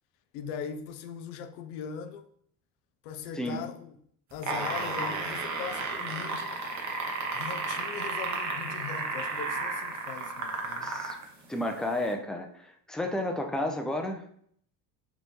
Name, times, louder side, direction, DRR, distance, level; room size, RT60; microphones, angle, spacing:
voice 1, 0.3-2.3 3.0-3.9 4.3-6.6 7.3-11.0, left 7 dB, 85° left, 0.5 m, -40 dB
sound 1, 4.3-11.2 12.1-12.2, right 4 dB, 40° right, 0.9 m, -33 dB
voice 2, 10.8-11.2 11.5-14.2, left 1 dB, ahead, 0.4 m, -32 dB
3.5 x 2.6 x 3.0 m
supercardioid pair, 75°, 46 cm